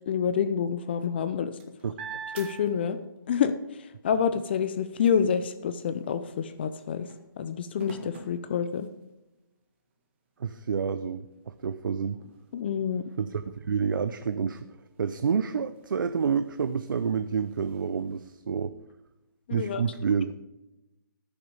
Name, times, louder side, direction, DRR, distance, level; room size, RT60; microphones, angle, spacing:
voice 1, 0.1-1.6 2.3-3.0 3.3-7.1 7.4-8.9 12.5-13.0 19.5-19.8, left 7 dB, 30° left, 12 dB, 0.5 m, -28 dB
sound 1, 1.1-3.4 3.8-9.3 9.9-10.0 10.4-18.3, right 6 dB, 30° right, 1.8 m, -49 dB
voice 2, 10.4-12.2 13.2-14.7 15.0-18.7 19.5-20.3, right 6 dB, 65° right, 11 dB, 0.6 m, -29 dB
13.5 x 7.0 x 5.1 m, 0.98 s
hypercardioid pair, 165°, 12 cm